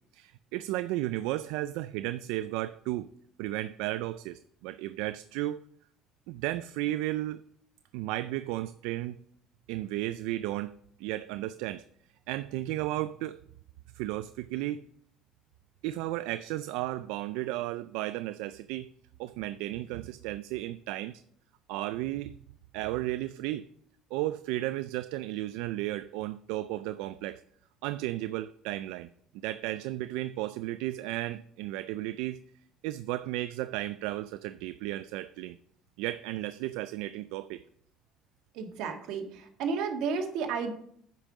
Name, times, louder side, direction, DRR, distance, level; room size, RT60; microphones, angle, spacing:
voice 1, 0.1-3.1 3.4-5.6 6.3-7.4 7.9-9.2 9.7-10.7 11.0-11.8 12.3-13.4 13.9-14.8 15.8-18.9 19.2-21.2 21.7-22.4 22.7-23.6 24.1-27.4 27.8-29.1 29.4-32.4 32.8-35.6 36.0-37.6, right 15 dB, 90° right, 13 dB, 0.3 m, -34 dB
voice 2, 38.5-40.7, right 5 dB, 70° right, 4 dB, 1.7 m, -32 dB
10.0 x 5.4 x 6.1 m, 0.66 s
cardioid pair, 125°, 0 cm